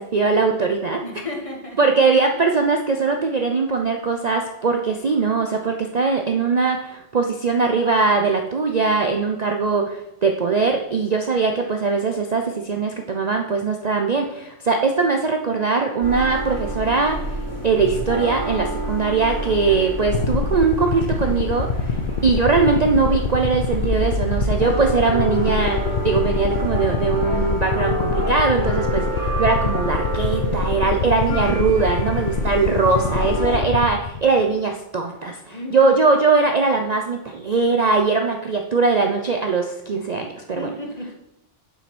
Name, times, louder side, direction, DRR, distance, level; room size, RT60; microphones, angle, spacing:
voice 1, 0.0-1.0 1.8-17.4 17.6-40.7, right 4 dB, 40° right, 3 dB, 0.7 m, -21 dB
voice 2, 1.0-1.9 5.7-6.0 31.0-31.6 32.2-32.9 35.5-35.9 40.6-41.1, left 1 dB, 25° left, 0 dB, 1.8 m, -34 dB
sound 1, 16.0-33.6, equal, 15° right, 3.5 m, -28 dB
sound 2, 20.1-34.5, left 5 dB, 50° left, 0.8 m, -26 dB
7.6 x 5.8 x 6.1 m, 0.85 s
omnidirectional pair, 1.3 m